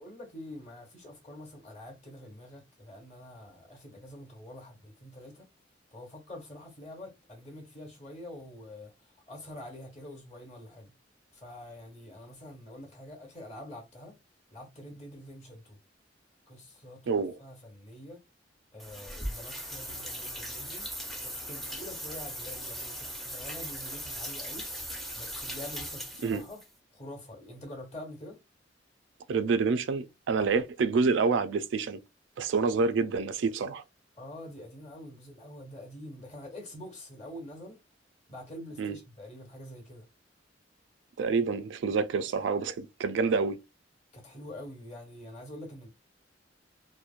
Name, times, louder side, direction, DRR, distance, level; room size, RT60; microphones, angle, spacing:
voice 1, 0.0-5.5 5.9-10.9 11.3-14.2 14.5-15.8 16.5-18.2 18.7-20.9 21.2-24.7 25.1-26.6 26.9-28.4 30.3-30.6 34.2-37.8 38.3-40.0 44.1-45.9, left 1 dB, 35° left, 1.1 m, -46 dB
voice 2, 17.1-17.4 26.2-26.4 29.3-32.0 32.4-33.8 38.8-38.9 41.2-43.6, right 4 dB, 75° right, 0.3 m, -27 dB
sound 1, 18.8-26.7, equal, ahead, 0.5 m, -39 dB
2.9 x 2.1 x 2.4 m
head